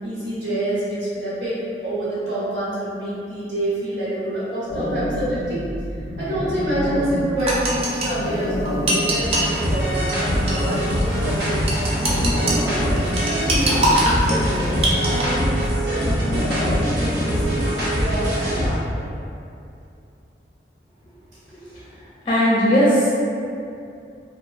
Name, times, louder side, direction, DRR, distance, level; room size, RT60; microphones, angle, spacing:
voice 1, 0.0-5.6 6.2-12.7 13.2-14.7 15.0-19.1, right 1 dB, 85° right, -10 dB, 1.0 m, -27 dB
sound 1, 4.7-18.3, equal, 90° left, 0.4 m, -28 dB
sound 2, 7.4-9.5 10.1-10.2 10.5-10.8 11.0-11.1 11.7-12.5 13.0-15.2, right 1 dB, 35° right, 0.4 m, -22 dB
sound 3, 9.2-18.8, equal, 65° right, 0.7 m, -24 dB
voice 2, 22.2-23.1, equal, 30° left, -9 dB, 0.5 m, -17 dB
2.8 x 2.1 x 2.4 m, 2.5 s
head